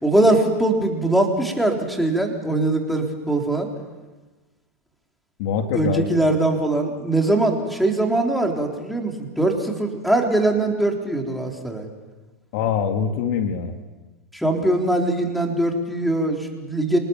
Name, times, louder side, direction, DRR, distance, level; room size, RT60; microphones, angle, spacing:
voice 1, 0.0-3.7 5.7-11.9 14.3-17.0, right 2 dB, ahead, 2 dB, 4.0 m, -21 dB
voice 2, 5.4-6.1 12.5-13.8, left 7 dB, 60° left, 6 dB, 2.3 m, -24 dB
27.0 x 19.5 x 7.4 m, 1.2 s
hypercardioid pair, 110°, 8 cm